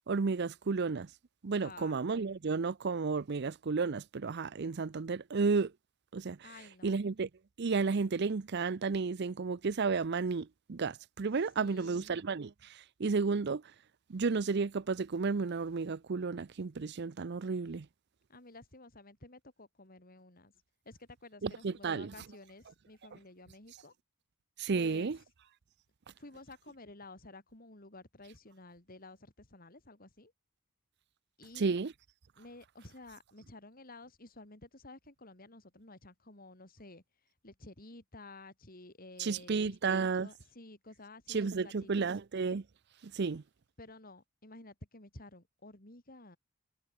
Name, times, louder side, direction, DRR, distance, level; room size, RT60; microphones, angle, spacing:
voice 1, 0.1-1.1 1.4-5.7 6.1-6.4 6.8-7.3 7.6-13.6 14.1-17.9 21.4-22.1 24.6-25.2 31.6-31.9 39.2-40.3 41.3-42.6 43.0-43.4, right 4 dB, 55° right, 0.6 m, -32 dB
voice 2, 1.6-2.0 6.4-7.0 11.5-12.1 18.3-20.5 20.8-23.9 24.7-25.2 26.2-30.3 31.4-31.8 32.4-37.0 37.4-42.1 43.8-46.4, left 2 dB, 45° left, 4.0 m, -52 dB
head